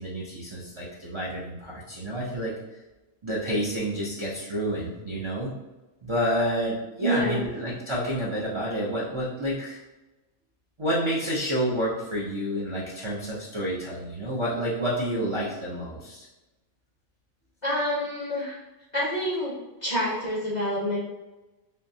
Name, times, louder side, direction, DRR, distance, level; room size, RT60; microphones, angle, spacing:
voice 1, 0.0-2.5 3.2-5.5 6.0-9.8 10.8-16.3, equal, 45° right, -7 dB, 0.3 m, -29 dB
voice 2, 7.0-7.4 17.6-18.6 18.9-19.5 19.8-21.0, equal, 40° left, -5 dB, 0.7 m, -27 dB
5.3 x 2.0 x 2.7 m, 1.1 s
omnidirectional pair, 1.5 m